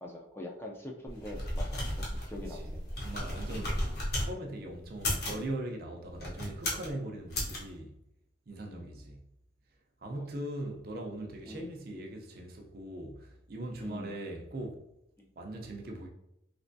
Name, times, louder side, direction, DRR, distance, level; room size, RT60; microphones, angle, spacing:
voice 1, 0.0-2.8 3.5-3.7 8.6-9.0 10.2-10.3 11.5-11.7 13.8-14.1 15.2-15.3, left 1 dB, 10° left, 0.4 m, -44 dB
sound 1, 1.1-4.3 4.9-5.4 6.1-6.9 7.3-7.6, left 1 dB, 55° left, 1.0 m, -34 dB
voice 2, 3.0-3.8 4.2-7.9 8.5-9.2 10.0-14.8 15.4-16.1, right 1 dB, 55° right, 0.5 m, -40 dB
3.3 x 3.0 x 2.6 m
head